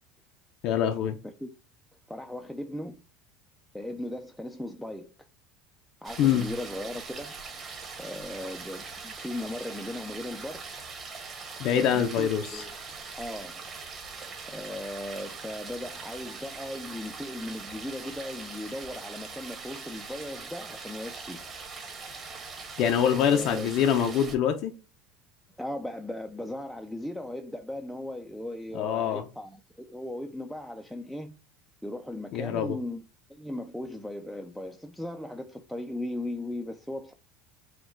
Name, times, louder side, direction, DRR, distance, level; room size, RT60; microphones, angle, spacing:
voice 1, 0.6-1.2 6.2-6.5 11.6-12.6 22.8-24.7 28.7-29.2 32.3-32.8, left 9 dB, 55° left, 0.5 m, -25 dB
voice 2, 2.1-3.0 3.7-5.1 6.0-7.4 8.0-10.7 11.7-12.7 13.1-13.6 14.5-21.4 23.3-23.7 25.6-31.4 31.8-33.0 33.3-37.1, left 1 dB, ahead, 0.4 m, -37 dB
sound 1, 6.0-24.3, right 4 dB, 30° right, 1.2 m, -42 dB
4.3 x 2.2 x 4.3 m
supercardioid pair, 140°, 0 cm